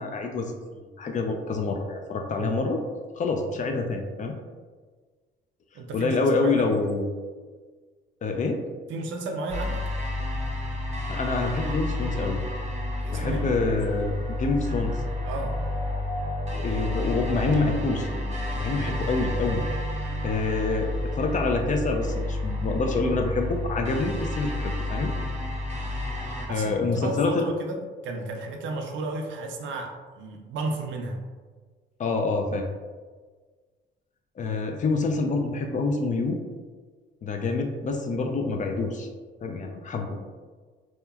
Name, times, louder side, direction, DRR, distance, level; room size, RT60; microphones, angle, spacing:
voice 1, 0.0-2.8 3.2-4.3 5.9-7.1 8.2-8.6 11.1-12.4 13.1-15.0 16.5-18.1 18.6-19.6 20.2-25.1 26.5-27.5 32.0-32.7 34.4-36.4 37.2-39.1 39.4-40.2, left 3 dB, 40° left, 3 dB, 0.4 m, -27 dB
voice 2, 5.7-6.2 6.4-6.7 8.9-9.8 13.0-13.4 15.3-15.6 26.4-31.2 38.1-38.3, right 2 dB, 75° right, 3 dB, 0.5 m, -33 dB
sound 1, 9.5-26.5, left 1 dB, 35° right, 0.6 m, -30 dB
2.8 x 2.2 x 2.3 m, 1.4 s
cardioid pair, 90°, 20 cm